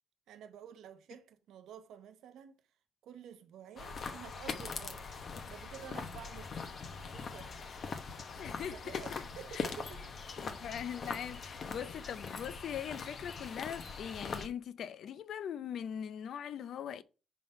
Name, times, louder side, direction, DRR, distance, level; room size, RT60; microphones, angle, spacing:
voice 1, 0.3-2.6 3.0-5.1 5.5-6.6 6.9-7.7 8.7-10.1 11.0-11.2, right 9 dB, 80° right, 0.7 m, -51 dB
sound 1, 3.8-14.5, left 5 dB, 50° left, 0.9 m, -42 dB
voice 2, 8.4-9.2 9.5-9.7 10.4-17.0, left 9 dB, 70° left, 0.5 m, -41 dB
5.4 x 3.8 x 5.5 m
cardioid pair, 90°, 0 cm